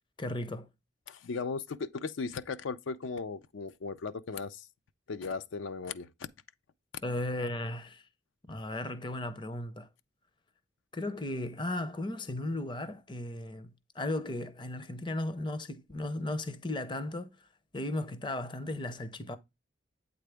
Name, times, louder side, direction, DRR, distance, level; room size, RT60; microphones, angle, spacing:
voice 1, 0.2-0.7 7.0-8.1 8.5-9.9 10.9-17.5 17.7-19.4, left 1 dB, 25° left, 0.5 m, -36 dB
voice 2, 1.1-4.7 5.1-6.1, left 4 dB, 75° left, 0.4 m, -37 dB
8.4 x 3.9 x 3.3 m
head